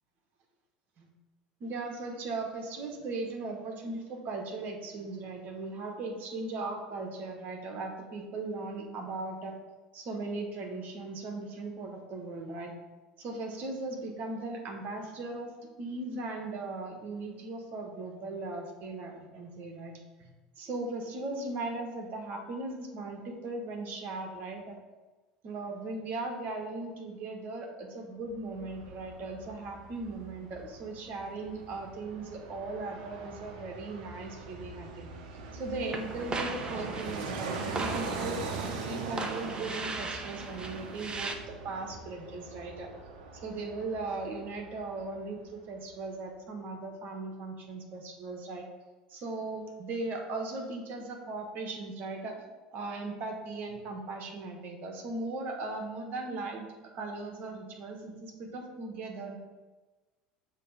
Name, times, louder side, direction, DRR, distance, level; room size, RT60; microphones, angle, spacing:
voice 1, 1.6-9.6 9.9-12.7 13.2-20.3 20.6-24.8 25.4-35.1 35.5-38.4 38.8-42.9 43.3-48.7 49.1-52.3 52.7-56.7 56.9-59.4, right 3 dB, 45° right, 2 dB, 1.2 m, -38 dB
Fixed-wing aircraft airplane, 28.3-45.3 45.6-45.7, right 4 dB, 65° right, 0.7 m, -41 dB
sound 1, 35.9-41.4, right 3 dB, 20° right, 0.6 m, -39 dB
6.6 x 3.0 x 5.4 m, 1.2 s
figure-of-eight pair, 70°, 4 cm